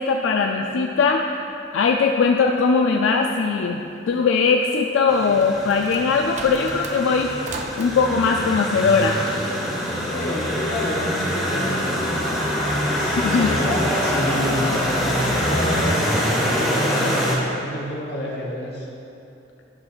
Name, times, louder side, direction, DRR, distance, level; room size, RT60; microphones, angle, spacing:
voice 1, 0.0-1.3 1.7-7.3 7.8-9.2 13.2-13.5, left 5 dB, 85° left, 2 dB, 0.3 m, -20 dB
sound 1, 5.0-7.9, right 3 dB, 40° right, 0.5 m, -37 dB
sound 2, 5.1-17.3, equal, ahead, 1.5 m, -24 dB
voice 2, 10.1-11.7 12.2-14.8 15.3-17.0 17.5-18.9, left 1 dB, 60° left, -3 dB, 1.3 m, -29 dB
11.5 x 6.0 x 2.4 m, 2.8 s
head